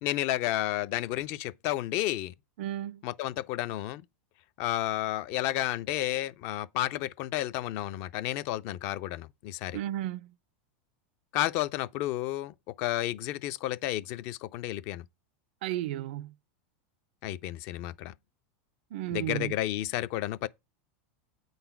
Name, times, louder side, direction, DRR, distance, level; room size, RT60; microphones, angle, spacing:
voice 1, 0.0-2.3 3.0-4.0 4.6-9.8 11.3-15.0 17.2-18.1 19.1-20.5, left 14 dB, 35° left, 0.4 m, -31 dB
voice 2, 2.6-3.0 9.7-10.3 15.6-16.3 18.9-19.5, right 13 dB, 55° right, 0.4 m, -33 dB
8.6 x 4.0 x 5.7 m
supercardioid pair, 170°, 7 cm